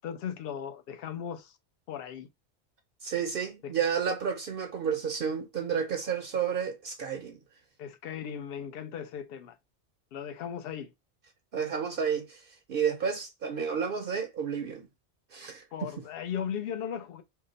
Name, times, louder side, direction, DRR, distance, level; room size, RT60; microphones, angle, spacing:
voice 1, 0.0-1.6 1.9-2.3 3.6-3.7 7.8-9.6 10.1-10.9 15.7-17.2, left 8 dB, 65° left, 0.7 m, -37 dB
voice 2, 3.0-7.4 11.5-12.4 12.7-14.9 15.3-15.9, right 7 dB, 60° right, 0.7 m, -31 dB
2.8 x 2.1 x 3.8 m
omnidirectional pair, 1.2 m